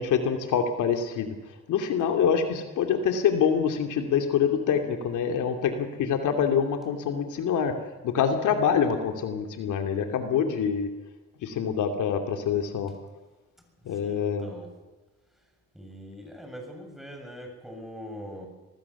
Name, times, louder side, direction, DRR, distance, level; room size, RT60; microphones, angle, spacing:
voice 1, 0.0-1.3 1.7-7.7 8.0-10.9 11.4-12.9 13.9-14.5, left 7 dB, 80° left, 5 dB, 2.8 m, -25 dB
voice 2, 13.9-14.7 15.7-18.5, equal, ahead, 3 dB, 7.1 m, -42 dB
25.5 x 19.0 x 7.2 m, 1.2 s
cardioid pair, 90°, 30 cm